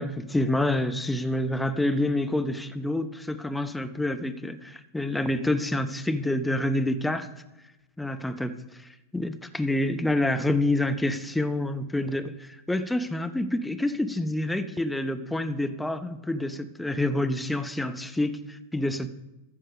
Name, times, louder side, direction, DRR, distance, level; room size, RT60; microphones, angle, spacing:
voice 1, 0.0-7.3 8.0-8.5 8.8-19.1, left 1 dB, 5° left, 9 dB, 0.7 m, -27 dB
14.0 x 5.6 x 5.3 m, 0.99 s
figure-of-eight pair, 90°, 0 cm